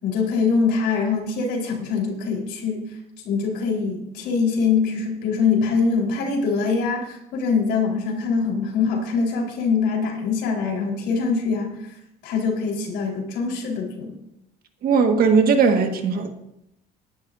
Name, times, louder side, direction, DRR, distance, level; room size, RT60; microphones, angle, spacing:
voice 1, 0.0-2.8 3.2-12.0 12.2-14.1, left 5 dB, 85° left, 4.0 m, -23 dB
voice 2, 14.8-16.3, right 5 dB, 60° right, 1.6 m, -18 dB
20.0 x 11.0 x 2.6 m
cardioid pair, 110°, 17 cm